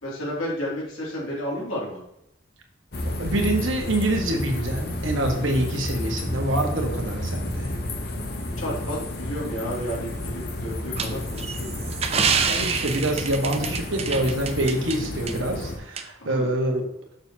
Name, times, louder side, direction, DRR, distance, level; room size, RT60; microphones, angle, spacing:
voice 1, 0.0-2.0 8.6-11.8 16.2-16.5, equal, 90° left, -5 dB, 2.6 m, -32 dB
sound 1, 2.9-15.8, left 1 dB, 50° left, 0.9 m, -31 dB
voice 2, 3.2-7.7 12.5-16.8, right 1 dB, 75° right, 2 dB, 1.4 m, -26 dB
sound 2, 11.0-15.0 15.3-15.4 16.0-16.1, right 6 dB, 30° right, 0.5 m, -27 dB
6.7 x 6.5 x 2.8 m, 0.82 s
head